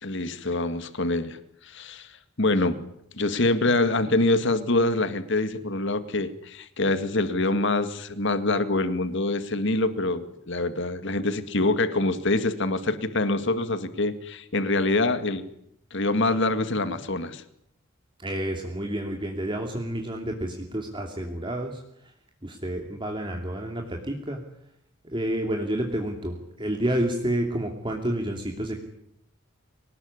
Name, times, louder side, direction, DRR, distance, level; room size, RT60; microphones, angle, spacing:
voice 1, 0.0-1.4 1.6-2.1 2.4-2.8 3.2-15.5 15.9-17.4, left 2 dB, 60° left, 11 dB, 2.1 m, -25 dB
voice 2, 18.2-21.8 22.4-24.4 25.0-28.8, right 1 dB, 25° right, 2 dB, 2.8 m, -29 dB
24.0 x 19.5 x 9.9 m, 0.74 s
head